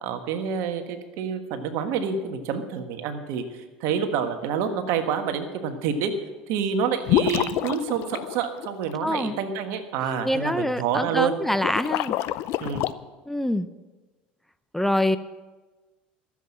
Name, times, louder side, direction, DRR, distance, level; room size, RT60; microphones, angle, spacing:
voice 1, 0.0-6.1 6.5-11.3 12.6-12.9, right 7 dB, 65° right, 7 dB, 1.5 m, -28 dB
sound 1, 7.1-8.9 11.5-12.9, left 15 dB, 60° left, 0.5 m, -27 dB
voice 2, 9.0-9.4 10.2-12.2 13.3-13.7 14.7-15.2, left 1 dB, 5° left, 12 dB, 0.6 m, -25 dB
13.5 x 7.7 x 7.6 m, 1.2 s
hypercardioid pair, 80°, 5 cm